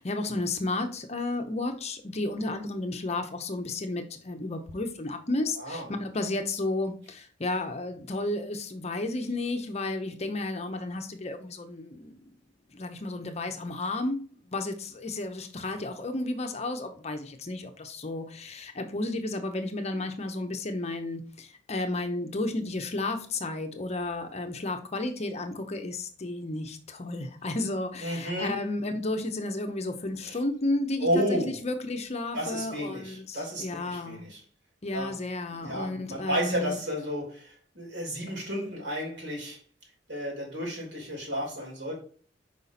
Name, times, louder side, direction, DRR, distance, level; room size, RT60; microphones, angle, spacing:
voice 1, 0.0-12.1 12.7-14.2 14.5-34.3 34.8-36.8, left 2 dB, 35° left, 6 dB, 0.7 m, -32 dB
voice 2, 5.5-5.9 28.0-28.6 30.2-30.4 31.0-31.6 32.3-34.4 34.9-35.2 35.5-39.6 40.1-41.9, equal, 65° right, -2 dB, 3.3 m, -32 dB
5.3 x 5.0 x 4.1 m, 0.43 s
head